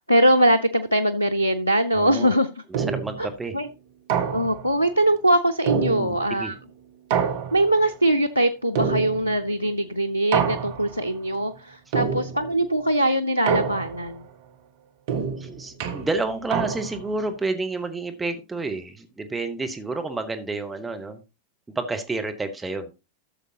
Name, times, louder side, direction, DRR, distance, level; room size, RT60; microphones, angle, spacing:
voice 1, 0.1-2.5 3.2-3.3 3.5-3.7 4.3-6.6 7.5-14.2, right 1 dB, 90° left, 12 dB, 0.5 m, -22 dB
voice 2, 1.9-2.3 2.9-3.5 5.9-6.5 15.4-21.2 21.7-22.9, right 3 dB, 10° right, 6 dB, 1.1 m, -30 dB
sound 1, 2.7-3.3 4.1-4.8 5.7-6.4 7.1-7.9 8.7-9.5 10.3-11.0 11.9-12.6 13.5-14.2 15.1-17.1, right 7 dB, 50° right, 1.2 m, -27 dB
13.0 x 6.9 x 2.8 m, 0.27 s
figure-of-eight pair, 90°, 0 cm